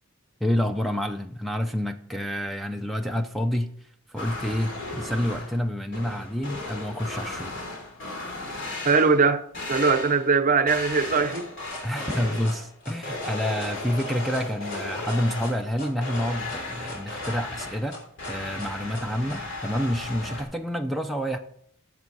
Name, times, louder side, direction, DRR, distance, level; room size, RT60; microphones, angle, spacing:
voice 1, 0.4-3.7 4.1-7.6 11.8-18.0 18.3-21.4, equal, ahead, 0.4 m, -28 dB
sound 1, 4.2-5.6 5.9-9.3 9.5-10.3 10.7-12.7 13.0-15.7 16.0-20.4, left 2 dB, 55° left, 3.3 m, -36 dB
voice 2, 8.8-9.4 9.7-11.5, right 4 dB, 40° right, 0.7 m, -21 dB
sound 2, 10.9-19.4, left 1 dB, 40° left, 3.9 m, -40 dB
12.0 x 7.4 x 4.0 m
head